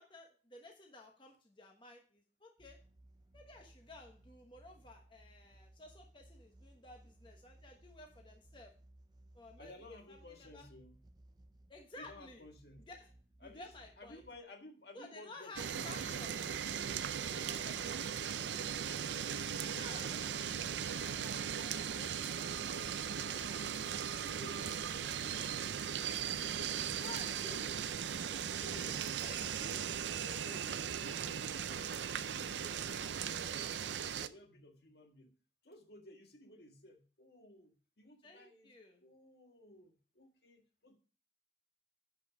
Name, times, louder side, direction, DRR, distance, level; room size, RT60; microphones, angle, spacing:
voice 1, 0.0-2.8 3.3-8.7 9.3-10.7 11.7-12.5 12.9-13.1 13.4-14.2 14.9-16.4 17.4-18.1 19.6-20.1 26.7-27.6 28.3-28.7 29.2-29.8 38.2-39.0, left 2 dB, 25° left, 2 dB, 1.2 m, -54 dB
sound 1, 2.6-14.4, right 1 dB, 25° right, 0.5 m, -62 dB
voice 2, 9.6-10.9 12.0-12.8 13.4-13.7 14.0-16.1 17.3-18.6 19.2-20.4 20.9-25.8 26.2-26.8 27.1-27.8 28.4-29.1 29.4-30.8 31.1-33.7 34.1-35.3 35.6-38.7 39.0-40.9, left 1 dB, 65° left, 4 dB, 1.7 m, -57 dB
sound 2, 15.6-34.3, right 8 dB, 85° right, 0.5 m, -38 dB
10.5 x 5.3 x 4.8 m, 0.37 s
head